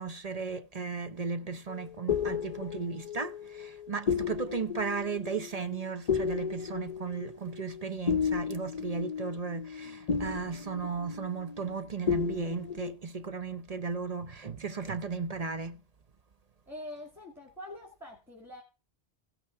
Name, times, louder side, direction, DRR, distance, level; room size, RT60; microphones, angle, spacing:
voice 1, 0.0-15.8, right 5 dB, 40° right, 0.7 m, -35 dB
sound 1, 1.7-11.8 12.1-12.9, left 7 dB, 45° left, 0.7 m, -34 dB
voice 2, 16.7-18.6, left 1 dB, ahead, 2.2 m, -44 dB
16.0 x 6.0 x 5.8 m
omnidirectional pair, 1.1 m